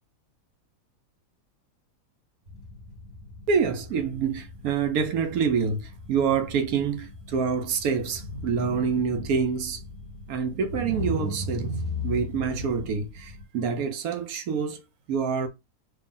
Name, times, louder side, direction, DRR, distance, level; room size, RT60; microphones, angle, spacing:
sound 1, 2.5-13.4, left 1 dB, 30° right, 1.0 m, -37 dB
voice 1, 3.5-9.8 10.3-11.8 12.0-14.8 15.1-15.5, right 6 dB, 70° right, 1.0 m, -26 dB
3.2 x 2.4 x 3.7 m
omnidirectional pair, 1.7 m